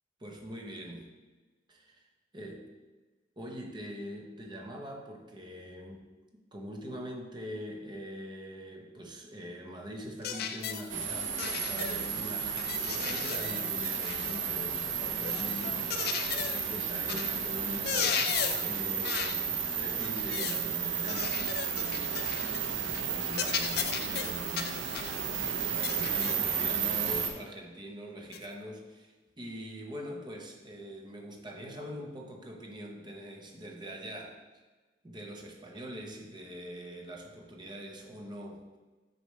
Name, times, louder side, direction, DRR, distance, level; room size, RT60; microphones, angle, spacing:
voice 1, 0.2-1.1 1.7-2.0 2.3-2.6 3.4-6.0 6.5-18.3 18.6-21.4 21.8-34.4 35.0-38.8, equal, 25° right, 0 dB, 0.8 m, -43 dB
sound 1, 10.2-10.9 11.4-12.2 12.6-14.4 15.2-16.7 17.1-17.4 17.7-18.7 19.0-19.4 20.0-20.7 21.1-22.7 22.9-23.1 23.3-25.2 25.8-26.5 27.1-27.2 28.3-28.5, left 8 dB, 55° left, 0.4 m, -35 dB
sound 2, 10.9-27.3, right 7 dB, 80° right, 0.7 m, -33 dB
6.8 x 4.3 x 3.2 m, 1.3 s
head